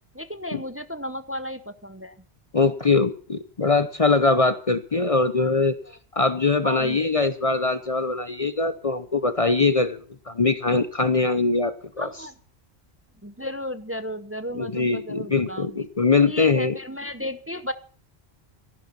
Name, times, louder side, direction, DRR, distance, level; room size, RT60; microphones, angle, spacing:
voice 1, 0.2-2.1 6.6-7.0 12.0-12.3 13.2-15.6 16.3-17.7, left 1 dB, 15° right, 11 dB, 0.9 m, -33 dB
voice 2, 2.5-5.8 6.1-10.0 10.3-12.3 14.5-16.8, left 3 dB, 35° left, 12 dB, 0.9 m, -22 dB
14.5 x 11.5 x 5.8 m, 0.44 s
omnidirectional pair, 1.1 m